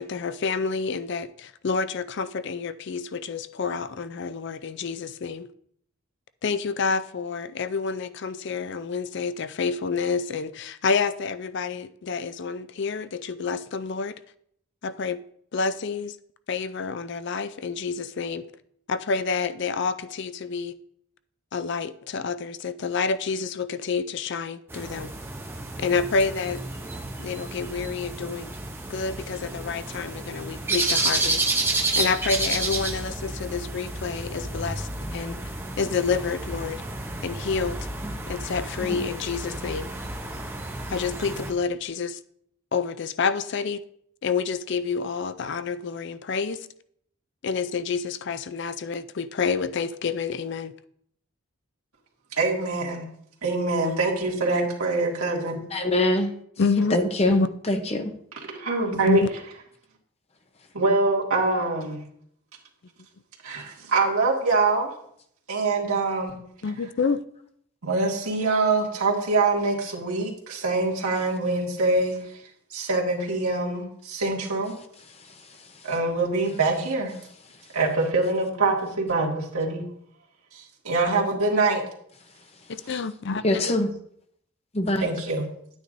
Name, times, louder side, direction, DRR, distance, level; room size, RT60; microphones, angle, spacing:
voice 1, 0.0-5.5 6.4-14.1 14.8-15.2 15.5-16.2 16.5-18.4 18.9-20.8 21.5-25.1 25.8-26.6 27.2-28.5 28.9-31.4 32.0-35.4 35.8-36.8 37.2-37.8 38.3-39.9 40.9-42.2 42.7-43.8 44.2-46.7 47.4-50.7 56.6-57.0 57.3-57.5 59.1-59.3 66.6-67.2 82.7-83.7, left 5 dB, 55° left, 0.4 m, -28 dB
sound 1, 24.7-41.5, right 2 dB, 10° right, 0.7 m, -31 dB
voice 2, 52.3-53.1 53.4-55.7 58.5-59.2 60.7-62.0 63.4-64.9 65.5-66.4 67.8-72.4 72.7-74.7 75.8-77.1 77.7-79.8 80.5-81.8 85.0-85.5, right 3 dB, 90° right, 2.0 m, -24 dB
voice 3, 55.7-56.3 56.9-57.4 57.7-58.1 83.4-83.9 84.7-85.0, left 1 dB, 30° left, 0.8 m, -23 dB
9.9 x 9.4 x 2.6 m
head